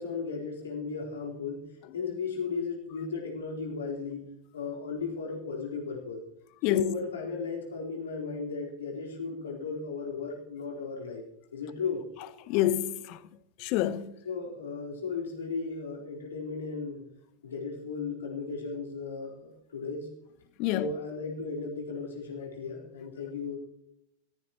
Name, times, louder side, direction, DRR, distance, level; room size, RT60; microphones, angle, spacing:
voice 1, 0.0-1.6 1.9-4.2 4.5-6.2 6.7-11.2 11.5-12.0 14.2-17.0 17.4-20.1 20.7-23.6, left 5 dB, 65° left, 4.1 m, -35 dB
voice 2, 6.6-6.9 12.5-13.2 13.6-14.1 20.6-20.9, left 13 dB, 45° left, 0.8 m, -27 dB
21.5 x 15.5 x 3.1 m
figure-of-eight pair, 90°, 0 cm